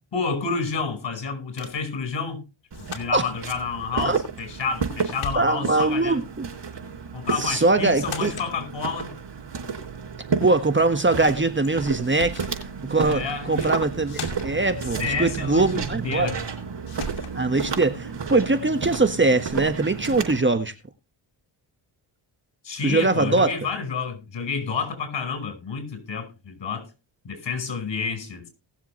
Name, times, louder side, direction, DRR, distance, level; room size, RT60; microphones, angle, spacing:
voice 1, 0.1-2.4 2.8-6.2 7.1-9.1 13.0-13.8 15.0-16.4 22.6-26.9 27.2-28.5, left 5 dB, 60° left, 5.1 m, -29 dB
sound 1, 1.6-1.9 2.7-3.3 4.4-4.8 5.1-5.8 7.4-7.7 8.0-8.5 11.6-11.7 12.0-12.6 13.5-13.8 14.1-14.7 16.4-16.5 16.9-17.4, left 6 dB, 75° left, 2.7 m, -39 dB
Walk footsteps, 2.7-20.4, right 5 dB, 60° right, 4.4 m, -32 dB
voice 2, 5.3-6.5 7.4-8.3 10.4-12.4 12.8-16.3 17.3-20.7 22.8-23.6, right 3 dB, 25° right, 1.5 m, -22 dB
19.0 x 7.3 x 3.2 m
cardioid pair, 65°, 48 cm